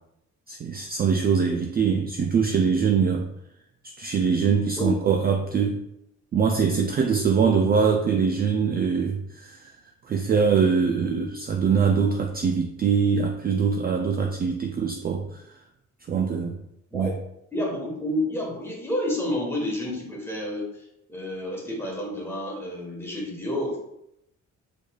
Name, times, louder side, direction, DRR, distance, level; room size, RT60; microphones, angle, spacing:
voice 1, 0.5-3.3 3.8-5.8 6.3-9.7 10.1-15.4 16.1-16.6 16.9-17.1, right 6 dB, 30° right, 2 dB, 0.4 m, -23 dB
voice 2, 17.5-23.8, left 1 dB, 10° left, -2 dB, 1.3 m, -30 dB
4.0 x 3.2 x 2.3 m, 0.80 s
cardioid pair, 90°, 30 cm